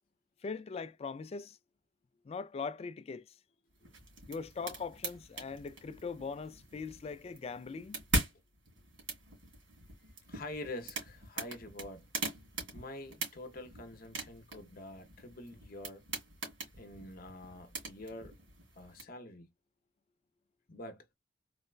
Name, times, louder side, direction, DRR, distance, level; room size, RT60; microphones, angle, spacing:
voice 1, 0.4-1.6 2.2-3.4 4.3-8.0, left 5 dB, 35° left, 0.3 m, -41 dB
sound 1, 3.8-19.0, right 2 dB, 85° right, 2.4 m, -42 dB
voice 2, 10.3-12.0 12.7-16.0 16.7-18.3 18.8-19.5 20.7-21.0, left 2 dB, 50° left, 0.7 m, -46 dB
4.0 x 2.2 x 2.3 m
head